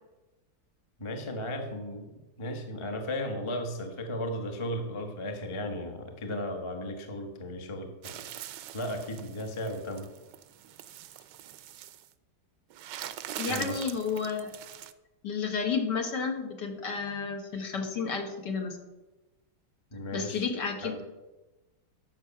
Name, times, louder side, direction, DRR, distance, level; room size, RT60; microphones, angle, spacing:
voice 1, 1.0-2.1 2.4-8.2 8.7-10.1 13.4-13.8 19.9-20.5 20.8-21.0, left 1 dB, 20° left, 4 dB, 1.0 m, -35 dB
sound 1, 8.0-12.1 12.7-14.9, right 11 dB, 70° right, 1.1 m, -43 dB
voice 2, 13.4-14.5 15.2-18.8 20.1-21.0, left 5 dB, 55° left, 3 dB, 1.9 m, -31 dB
12.5 x 6.8 x 5.8 m, 1.1 s
omnidirectional pair, 2.3 m